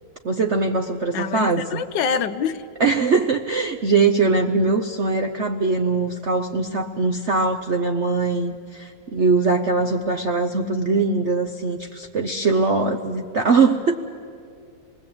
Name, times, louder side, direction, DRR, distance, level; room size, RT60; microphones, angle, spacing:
voice 1, 0.2-1.8 2.8-13.9, right 4 dB, 60° right, 4 dB, 0.7 m, -21 dB
voice 2, 1.1-2.6, left 6 dB, 70° left, 10 dB, 1.4 m, -25 dB
26.5 x 20.0 x 8.7 m, 2.4 s
omnidirectional pair, 2.1 m